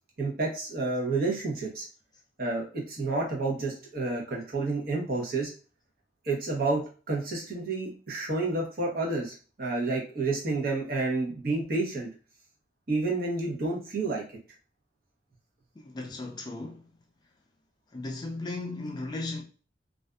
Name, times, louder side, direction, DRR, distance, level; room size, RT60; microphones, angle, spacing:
voice 1, 0.2-1.9 2.4-5.5 6.2-12.1 12.9-14.2, right 3 dB, 55° right, 0.9 m, -30 dB
voice 2, 15.8-16.9 17.9-19.4, left 2 dB, 25° left, 0.3 m, -36 dB
2.5 x 2.4 x 2.2 m
head